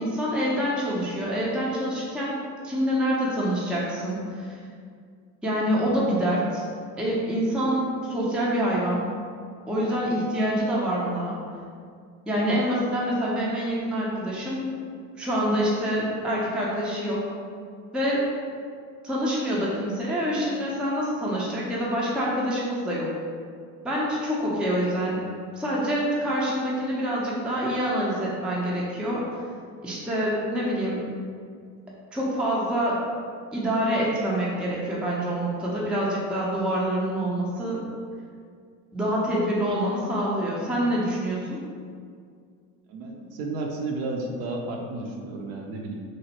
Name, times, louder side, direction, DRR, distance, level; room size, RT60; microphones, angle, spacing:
voice 1, 0.0-2.3 2.6-4.5 5.4-6.6 7.0-9.1 9.7-11.4 12.3-14.7 15.2-17.2 17.9-18.2 19.0-23.1 23.8-25.3 25.6-29.2 29.8-31.1 32.1-33.0 33.5-37.8 38.9-41.6, equal, ahead, -5 dB, 0.4 m, -26 dB
voice 2, 42.9-46.0, right 2 dB, 55° right, 1 dB, 0.5 m, -32 dB
3.1 x 2.1 x 2.8 m, 2.1 s
hypercardioid pair, 80°, 46 cm